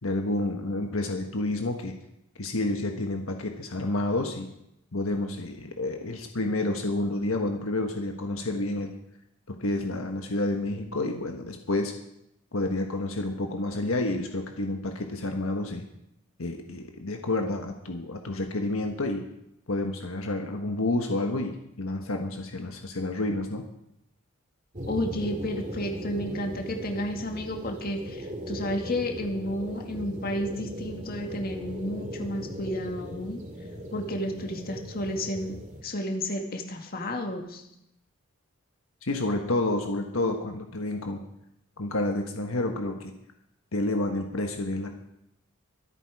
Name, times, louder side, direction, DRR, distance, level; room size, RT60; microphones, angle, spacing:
voice 1, 0.0-2.0 2.4-4.5 4.9-9.0 9.5-11.9 12.5-15.8 16.4-19.3 19.7-23.6 39.0-41.2 41.8-43.1 43.7-44.9, left 2 dB, 75° left, 4 dB, 1.4 m, -29 dB
sound 1, 24.7-35.8, equal, 35° right, 2.2 m, -38 dB
voice 2, 24.9-33.4 33.9-35.6 35.8-37.6, left 1 dB, 45° left, 3 dB, 2.0 m, -32 dB
24.0 x 8.7 x 4.8 m, 0.81 s
head